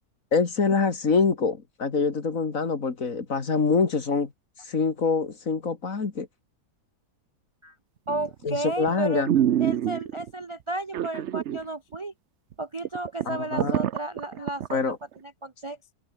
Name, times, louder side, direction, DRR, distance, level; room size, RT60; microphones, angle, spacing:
voice 1, 0.3-4.3 4.6-6.3 8.4-9.3 13.3-13.8 14.7-15.0, left 4 dB, 55° left, 2.6 m, -25 dB
voice 2, 8.1-9.2 9.6-12.1 12.6-14.8 15.2-15.8, right 2 dB, 30° right, 0.6 m, -33 dB
sound 1, 8.1-8.4 8.9-9.0 9.3-10.3 10.9-11.6 11.9-12.0 12.5-12.6 12.8-14.7 15.2-15.3, right 10 dB, 55° right, 0.9 m, -26 dB
omnidirectional pair, 1.7 m